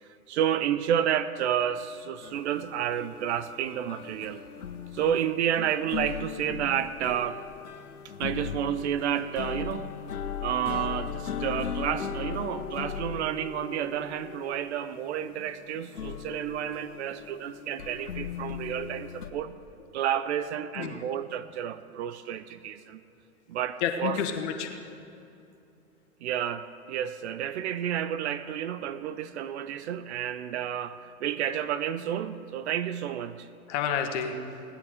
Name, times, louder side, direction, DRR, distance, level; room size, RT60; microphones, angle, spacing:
voice 1, 0.3-4.4 4.9-7.4 8.2-9.9 10.4-19.6 19.9-23.0 23.5-24.2 26.2-33.5, right 10 dB, 50° right, 14 dB, 0.6 m, -30 dB
sound 1, 2.2-19.3, left 8 dB, 90° left, 0.9 m, -38 dB
voice 2, 23.8-24.9 33.7-34.4, left 7 dB, 50° left, 5 dB, 1.6 m, -30 dB
17.5 x 9.9 x 5.0 m, 2.7 s
hypercardioid pair, 110°, 44 cm